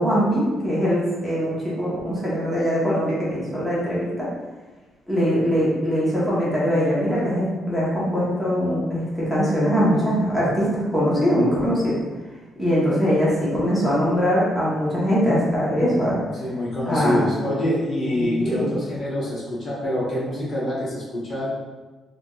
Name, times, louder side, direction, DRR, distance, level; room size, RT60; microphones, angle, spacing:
voice 1, 0.0-4.3 5.1-11.9 12.6-16.2 16.9-17.2 18.2-18.7, equal, 5° right, -8 dB, 1.2 m, -22 dB
voice 2, 15.7-21.5, left 1 dB, 50° left, -7 dB, 1.2 m, -26 dB
3.3 x 2.9 x 2.4 m, 1.2 s
cardioid pair, 90°, 0 cm